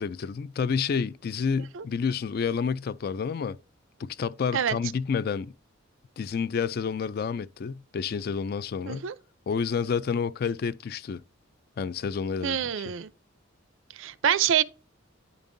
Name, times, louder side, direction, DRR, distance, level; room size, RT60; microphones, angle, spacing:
voice 1, 0.0-3.6 4.0-5.5 6.2-9.1 9.5-11.2 11.8-12.6 12.8-12.9, left 6 dB, 45° left, 0.3 m, -29 dB
voice 2, 12.4-13.1 14.0-14.6, right 9 dB, 70° right, 0.5 m, -26 dB
9.9 x 5.3 x 2.6 m
head